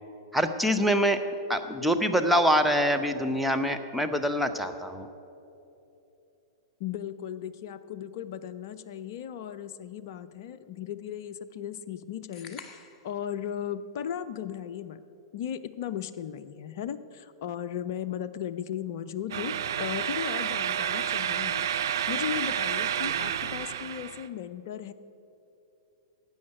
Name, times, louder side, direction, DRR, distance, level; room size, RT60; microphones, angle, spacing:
voice 1, 0.3-1.2 1.5-5.1, equal, ahead, 4 dB, 0.8 m, -25 dB
voice 2, 6.8-15.0 15.3-24.9, left 9 dB, 50° left, 12 dB, 0.6 m, -36 dB
sound 1, 12.3-13.1, left 5 dB, 25° left, 1.2 m, -46 dB
sound 2, 19.3-24.3, right 9 dB, 60° right, 0.6 m, -30 dB
12.5 x 8.6 x 8.2 m, 2.9 s
figure-of-eight pair, 105°, 2 cm